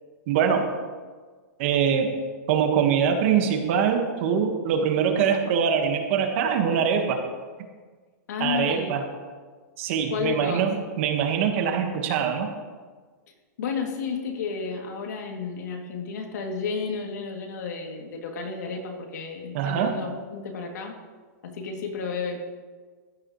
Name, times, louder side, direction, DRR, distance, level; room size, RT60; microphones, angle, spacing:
voice 1, 0.3-0.7 1.6-2.2 2.5-7.2 8.4-9.0 9.8-12.5 19.5-20.0, right 7 dB, 45° right, 5 dB, 1.6 m, -23 dB
voice 2, 8.3-8.9 10.1-10.6 13.6-20.9 21.4-22.4, left 5 dB, 75° left, 1 dB, 2.8 m, -32 dB
15.0 x 12.5 x 3.2 m, 1.4 s
supercardioid pair, 160°, 9 cm